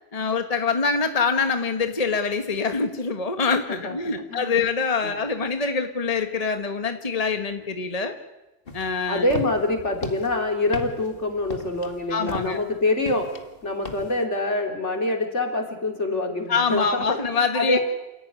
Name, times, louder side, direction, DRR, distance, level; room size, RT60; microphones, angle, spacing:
voice 1, 0.1-8.1 8.7-9.3 12.1-12.6 16.5-17.8, left 5 dB, 30° left, 7 dB, 1.5 m, -25 dB
voice 2, 3.7-4.6 5.0-5.2 9.1-13.4 13.6-17.2 17.5-17.8, left 2 dB, 70° left, 3 dB, 4.0 m, -25 dB
sound 1, 8.7-14.2, left 2 dB, 50° left, 2.2 m, -37 dB
28.5 x 16.5 x 9.6 m, 1.0 s
omnidirectional pair, 1.3 m